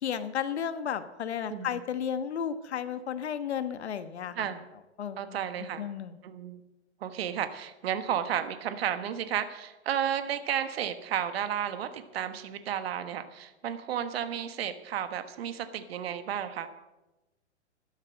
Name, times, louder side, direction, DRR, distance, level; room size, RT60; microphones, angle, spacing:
voice 1, 0.0-4.5 5.0-6.2, left 8 dB, 70° left, 11 dB, 1.4 m, -33 dB
voice 2, 1.5-1.8 4.4-4.6 5.2-5.8 6.2-6.6 7.0-16.7, right 9 dB, 60° right, 10 dB, 1.4 m, -32 dB
13.0 x 12.0 x 6.4 m, 1.0 s
hypercardioid pair, 120°, 34 cm